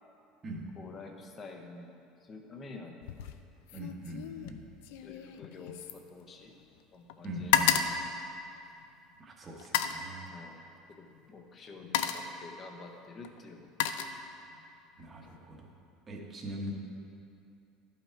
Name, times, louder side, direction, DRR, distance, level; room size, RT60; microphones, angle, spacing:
voice 1, 0.8-1.9 2.2-3.0 3.7-3.9 5.0-6.5 6.9-7.8 10.3-14.2, left 3 dB, 20° left, 3 dB, 0.7 m, -49 dB
sound 1, 3.0-3.4 3.7-6.8 7.1-9.0 9.6-10.1 11.1-11.3 11.7-12.4 13.2-14.6 15.0-15.4, left 9 dB, 80° left, 0.4 m, -32 dB
voice 2, 3.7-4.6 7.2-7.8 9.2-10.3 15.0-15.7 16.1-16.7, right 1 dB, 20° right, 0 dB, 1.0 m, -41 dB
12.0 x 5.8 x 4.4 m, 2.6 s
cardioid pair, 175°, 0 cm